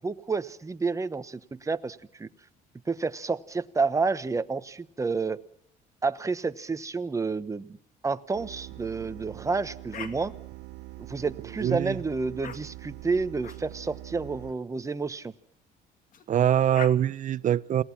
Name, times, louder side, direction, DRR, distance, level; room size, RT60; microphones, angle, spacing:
voice 1, 0.0-2.3 2.9-5.4 6.0-7.8 8.0-10.3 11.0-15.3, right 4 dB, 20° right, 1.1 m, -30 dB
sound 1, 8.3-14.5, right 19 dB, 85° right, 1.0 m, -44 dB
sound 2, 9.9-10.1 11.1-11.6 12.4-12.6 13.4-13.6 14.5-14.7 16.1-16.2 16.7-16.9, left 7 dB, 50° left, 2.3 m, -40 dB
voice 2, 11.6-12.0 16.3-17.8, right 10 dB, 50° right, 0.8 m, -23 dB
29.0 x 18.0 x 5.9 m
cardioid pair, 110°, 17 cm